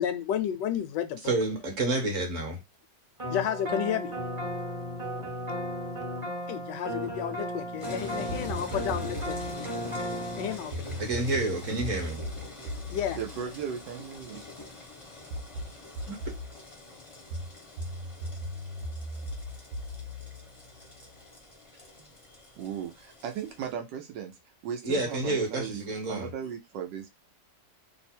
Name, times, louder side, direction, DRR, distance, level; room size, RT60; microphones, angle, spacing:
voice 1, 0.0-1.3 3.3-4.1 6.5-9.7 10.4-11.0 12.9-13.2, left 9 dB, 80° left, 9 dB, 1.2 m, -32 dB
voice 2, 1.3-2.6 11.0-12.2 16.1-16.2 24.8-26.3, right 2 dB, 50° right, 1 dB, 1.4 m, -29 dB
sound 1, 3.2-10.6, equal, 25° right, 0.8 m, -35 dB
sound 2, 7.8-23.7, left 3 dB, 35° left, 0.5 m, -46 dB
sound 3, 8.3-9.6 10.7-14.4 15.3-16.6 17.3-21.2, equal, 70° right, 1.2 m, -38 dB
voice 3, 11.3-12.0 13.1-14.4 21.7-22.1 22.6-24.4 24.6-25.8 26.1-27.1, right 8 dB, 85° right, 4 dB, 1.3 m, -37 dB
3.3 x 2.1 x 4.3 m, 0.23 s
omnidirectional pair, 1.9 m